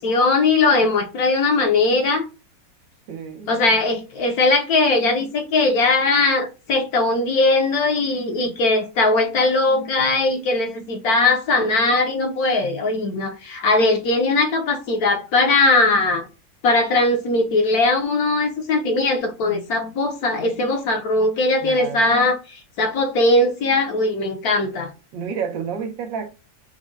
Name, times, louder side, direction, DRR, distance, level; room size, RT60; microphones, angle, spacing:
voice 1, 0.0-2.3 3.4-16.3 16.6-24.9, left 2 dB, 65° left, 1.1 m, -19 dB
voice 2, 3.1-3.5 21.6-22.1 25.1-26.3, right 6 dB, 90° right, 1.5 m, -30 dB
4.7 x 2.2 x 3.8 m
omnidirectional pair, 1.9 m